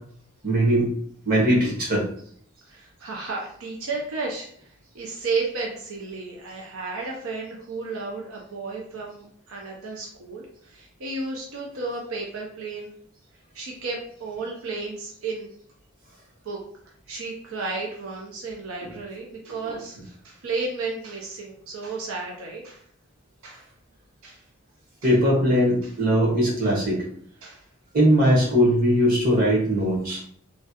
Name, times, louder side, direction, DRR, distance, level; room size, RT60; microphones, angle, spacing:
voice 1, 0.4-0.9 1.3-2.0 19.7-19.8 25.0-27.0 27.9-30.2, equal, 45° right, -5 dB, 1.2 m, -20 dB
voice 2, 2.6-13.0 13.5-15.6 16.4-16.6 17.1-22.8 23.4-23.7 24.2-24.5 25.0-25.1 25.8-25.9 26.6-26.7 27.4-27.7 28.2-28.3 30.1-30.2, right 3 dB, 80° right, -1 dB, 0.5 m, -33 dB
3.1 x 2.3 x 2.7 m, 0.62 s
head